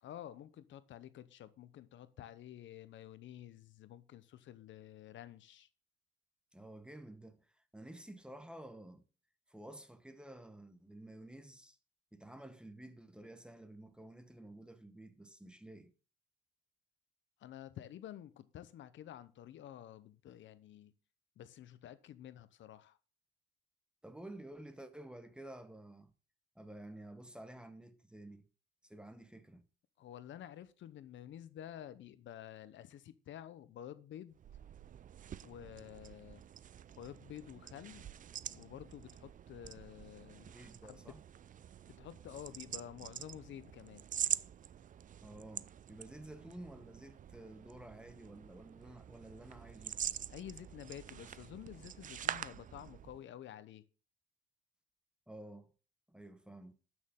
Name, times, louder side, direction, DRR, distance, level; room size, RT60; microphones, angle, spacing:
voice 1, 0.0-5.7 17.4-20.9 21.4-23.0 30.0-34.4 35.4-36.4 37.0-38.1 38.5-40.5 40.8-41.1 41.9-44.1 50.3-53.8, left 11 dB, 70° left, 0.8 m, -50 dB
voice 2, 6.5-9.0 9.5-11.8 12.1-15.9 24.0-26.1 26.5-28.5 28.8-29.7 40.5-41.2 45.2-50.0 55.3-55.7 56.1-56.7, right 1 dB, 5° right, 1.0 m, -52 dB
sound 1, 34.3-53.2, right 9 dB, 40° right, 0.4 m, -45 dB
12.5 x 6.3 x 3.7 m
cardioid pair, 90°, 20 cm